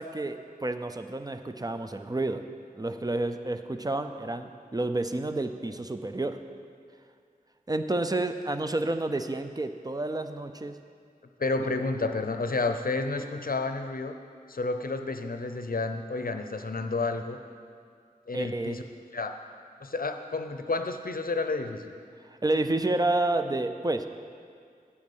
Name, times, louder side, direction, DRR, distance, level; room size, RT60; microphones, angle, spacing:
voice 1, 0.0-2.4 2.8-6.4 7.7-10.8 18.3-18.8 22.4-24.1, right 2 dB, 25° right, 8 dB, 0.5 m, -30 dB
voice 2, 11.4-14.1 14.5-17.4 18.3-18.8 19.1-19.3 19.8-21.9, left 3 dB, 70° left, 7 dB, 0.7 m, -30 dB
9.3 x 8.6 x 5.5 m, 2.2 s
wide cardioid pair, 55°, 16 cm